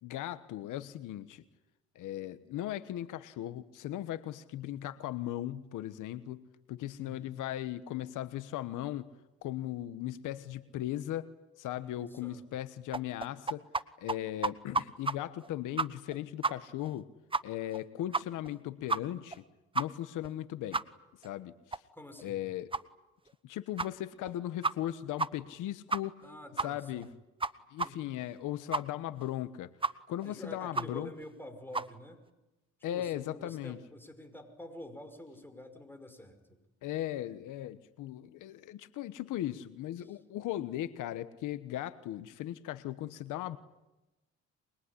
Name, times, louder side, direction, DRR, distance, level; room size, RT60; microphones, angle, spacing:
voice 1, 0.0-1.4 1.9-6.4 6.7-9.1 9.4-11.3 11.6-13.7 14.0-17.1 17.4-19.4 19.7-20.8 21.2-21.8 22.2-22.7 23.4-26.2 26.6-27.1 27.7-29.7 30.1-31.1 32.8-33.8 36.8-43.6, left 13 dB, 90° left, 13 dB, 1.2 m, -38 dB
voice 2, 7.0-7.3 11.7-12.4 21.9-22.4 26.2-27.1 27.8-28.1 30.2-32.2 32.9-36.6 40.0-40.2, left 1 dB, 5° left, 7 dB, 5.6 m, -48 dB
sound 1, 12.9-13.8 14.1-14.2 14.4-15.1 15.4-15.5 15.8-16.2 16.4-16.5 16.8-16.9 17.3-17.4 17.7-17.8 18.1-18.5 18.9-19.0 19.3-19.4 19.8-19.9 20.2-20.3 20.7-20.8 21.2-21.3 21.7-21.8 22.2-22.3 22.7-22.8 23.3-23.4 23.8-23.9 24.3-24.4 24.6-24.9 25.2-25.3 25.5-25.6 25.9-26.3 26.6-26.7 27.0-27.1 27.4-27.5 27.8-27.9 28.2-28.3 28.7-28.8 29.2-29.3 29.8-29.9 30.2-30.3 30.7-30.9 31.2-31.3 31.7-31.9, right 3 dB, 15° right, 1.1 m, -31 dB
24.5 x 22.0 x 9.9 m, 1.0 s
cardioid pair, 90°, 30 cm